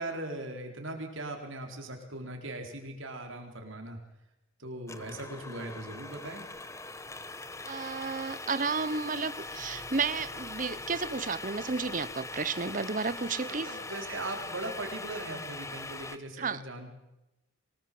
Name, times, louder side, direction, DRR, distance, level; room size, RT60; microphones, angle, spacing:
voice 1, 0.0-4.0 4.6-6.5 13.5-16.9, right 2 dB, 65° right, 3 dB, 4.4 m, -39 dB
sound 1, 4.9-16.2, left 3 dB, 15° left, 0.9 m, -41 dB
voice 2, 7.7-13.7 16.4-16.6, right 4 dB, 40° right, 16 dB, 0.9 m, -32 dB
sound 2, 9.5-13.2, equal, 45° left, 3.6 m, -55 dB
24.5 x 18.5 x 7.8 m, 0.95 s
head